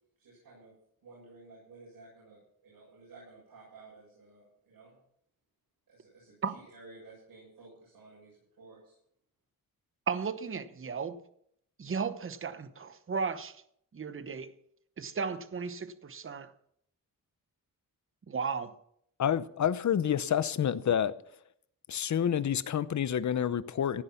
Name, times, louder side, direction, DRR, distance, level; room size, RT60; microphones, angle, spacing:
voice 1, 0.2-0.7 1.0-5.0 5.9-9.0, right 3 dB, 85° right, 7.4 m, -54 dB
voice 2, 10.1-11.2 11.8-13.6 13.9-14.5 15.0-16.5 18.3-18.8, right 5 dB, 35° right, 1.0 m, -35 dB
voice 3, 19.2-21.1 21.9-24.0, left 9 dB, 55° left, 0.8 m, -28 dB
16.5 x 10.0 x 5.8 m
wide cardioid pair, 125°, 35 cm